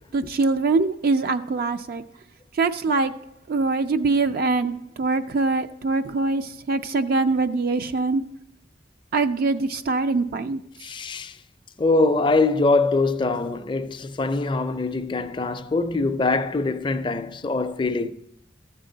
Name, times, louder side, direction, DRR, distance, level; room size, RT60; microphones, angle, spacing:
voice 1, 0.1-2.0 2.5-3.1 3.5-8.2 9.1-10.6, right 3 dB, 50° right, 0.4 m, -23 dB
voice 2, 10.8-11.4 11.8-18.1, left 3 dB, 25° left, 0.4 m, -23 dB
13.0 x 7.4 x 3.9 m
head